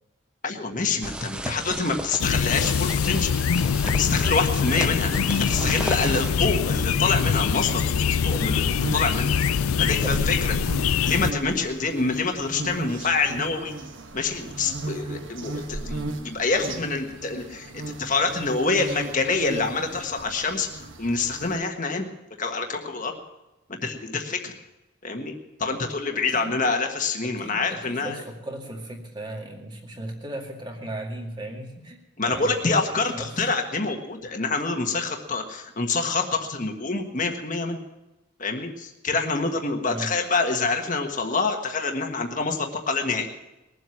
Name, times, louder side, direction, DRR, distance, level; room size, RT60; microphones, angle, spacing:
voice 1, 0.4-3.3 4.0-5.1 5.5-9.4 9.8-10.5 11.0-13.7 14.1-22.1 22.4-23.2 23.7-24.5 25.0-25.3 25.6-28.2 32.2-37.8 38.4-43.3, left 4 dB, 35° left, 4 dB, 1.4 m, -26 dB
sound 1, 1.0-6.3, right 1 dB, 5° right, 0.4 m, -35 dB
sound 2, 2.2-11.3, left 6 dB, 85° left, 0.4 m, -24 dB
sound 3, 3.8-21.6, right 2 dB, 60° right, 1.3 m, -36 dB
voice 2, 10.0-10.5 26.1-26.5 27.2-32.0 32.2-33.3 39.8-40.1, right 1 dB, 20° right, 1 dB, 2.1 m, -37 dB
20.5 x 7.7 x 7.3 m, 0.97 s
head